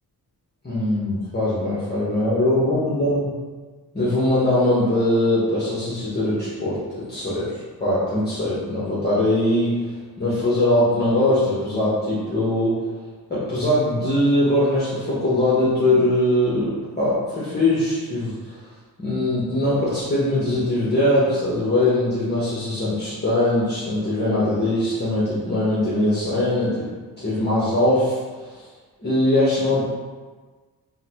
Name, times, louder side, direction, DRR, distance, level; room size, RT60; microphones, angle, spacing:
voice 1, 0.6-3.3 3.9-12.8 13.3-18.6 19.0-26.9 27.2-28.7 29.0-29.9, left 1 dB, 25° left, -10 dB, 0.8 m, -21 dB
3.7 x 2.1 x 2.9 m, 1.4 s
cardioid pair, 85°, 38 cm